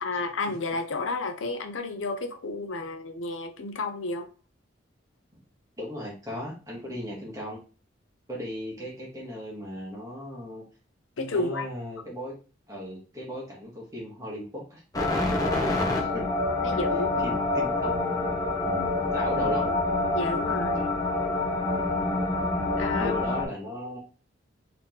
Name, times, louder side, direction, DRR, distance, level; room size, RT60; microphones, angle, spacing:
voice 1, 0.0-4.3 11.2-11.7 16.4-17.2 20.1-21.0 22.8-23.2, left 3 dB, 85° left, 0.7 m, -31 dB
voice 2, 5.8-7.6 8.3-10.6 11.3-12.3 12.7-14.8 15.7-16.3 17.2-18.0 18.6-19.8 21.7-22.0 23.0-24.0, left 1 dB, 15° right, 1.1 m, -36 dB
sound 1, 14.9-23.5, left 2 dB, 20° left, 0.9 m, -26 dB
3.6 x 2.8 x 3.9 m
head